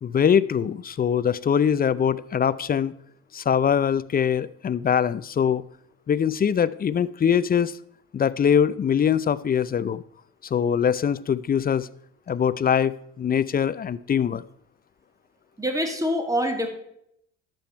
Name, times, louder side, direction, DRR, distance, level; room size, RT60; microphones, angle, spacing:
voice 1, 0.0-2.9 3.3-5.6 6.1-7.8 8.1-10.0 10.5-11.9 12.3-14.4, left 8 dB, 25° left, 18 dB, 0.5 m, -22 dB
voice 2, 15.6-16.7, equal, 10° right, 5 dB, 2.4 m, -25 dB
11.5 x 7.8 x 4.4 m, 0.73 s
supercardioid pair, 75°, 35 cm